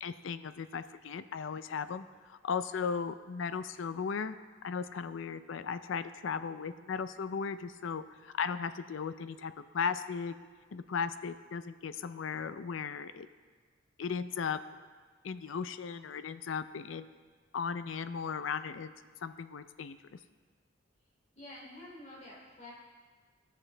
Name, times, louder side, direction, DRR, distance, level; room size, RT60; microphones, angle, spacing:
voice 1, 0.0-4.4 4.6-10.3 10.7-13.3 14.0-14.6 15.2-17.1 17.5-18.9 19.2-20.0, left 6 dB, 75° left, 12 dB, 0.4 m, -36 dB
voice 2, 21.3-22.7, left 1 dB, 40° left, -5 dB, 2.9 m, -48 dB
17.5 x 6.0 x 3.3 m, 1.5 s
head